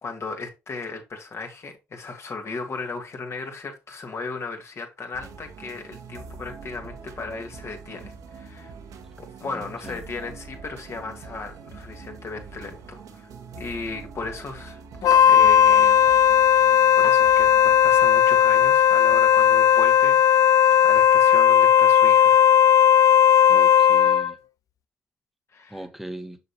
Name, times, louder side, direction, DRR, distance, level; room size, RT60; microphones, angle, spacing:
voice 1, 0.0-8.7 9.2-13.3 13.6-14.8 15.2-16.0 17.0-22.5 25.5-25.9, left 4 dB, 45° left, 2.4 m, -36 dB
sound 1, 5.1-22.8 23.5-23.7, right 5 dB, 65° right, 1.6 m, -44 dB
voice 2, 9.5-10.0 23.5-24.4 25.7-26.4, right 1 dB, ahead, 1.4 m, -39 dB
Wind instrument woodwind instrument, 15.0-24.3, left 9 dB, 60° left, 0.5 m, -16 dB
6.7 x 6.6 x 2.9 m
hypercardioid pair, 55°, 6 cm